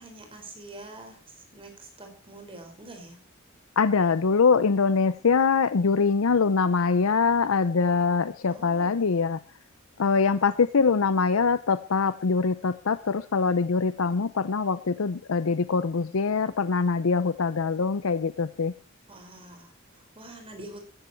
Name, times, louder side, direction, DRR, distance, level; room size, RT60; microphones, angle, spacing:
voice 1, 0.0-3.2 8.5-9.2 19.1-20.8, right 2 dB, 25° right, 4 dB, 5.1 m, -45 dB
voice 2, 3.8-9.4 10.0-18.7, left 5 dB, 80° left, 13 dB, 0.6 m, -23 dB
14.5 x 14.5 x 4.5 m, 0.37 s
head